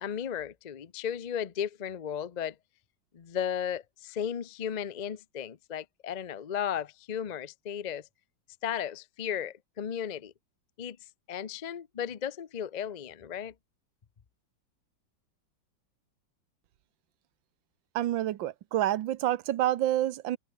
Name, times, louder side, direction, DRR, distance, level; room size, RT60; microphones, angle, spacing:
voice 1, 0.0-2.5 3.1-8.1 8.6-10.3 10.8-11.0 11.3-13.5, left 8 dB, 65° left, 0.4 m, -35 dB
voice 2, 17.9-20.4, right 13 dB, 80° right, 1.6 m, -28 dB
omnidirectional pair, 2.0 m